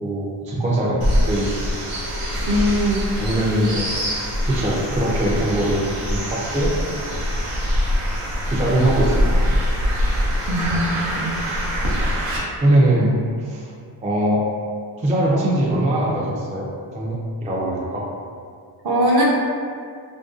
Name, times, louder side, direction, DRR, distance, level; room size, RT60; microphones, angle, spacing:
voice 1, 0.0-1.6 3.2-4.1 4.4-6.7 8.5-9.4 12.6-13.1 13.4-13.7 14.0-14.5 15.0-16.7 16.9-18.1, right 1 dB, 15° right, -4 dB, 0.3 m, -21 dB
sound 1, 1.0-12.4, equal, 90° right, 0.7 m, -23 dB
voice 2, 2.4-3.1 10.5-10.8 11.1-11.3 18.8-19.2, equal, 50° right, -3 dB, 0.6 m, -20 dB
2.6 x 2.2 x 2.4 m, 2.2 s
cardioid pair, 65°, 50 cm